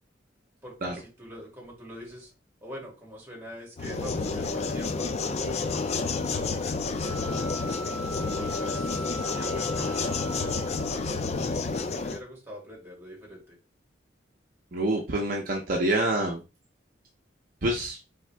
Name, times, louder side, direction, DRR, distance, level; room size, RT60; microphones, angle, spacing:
voice 1, 0.6-2.3 2.6-7.0 8.2-13.6, equal, 15° right, -2 dB, 2.2 m, -44 dB
sound 1, 3.8-12.2, left 4 dB, 35° left, 0.4 m, -30 dB
sound 2, 7.0-11.1, right 1 dB, 85° right, 0.8 m, -40 dB
voice 2, 14.7-16.4 17.6-18.0, right 1 dB, 50° right, 1 dB, 0.7 m, -26 dB
3.8 x 3.5 x 3.3 m, 0.29 s
head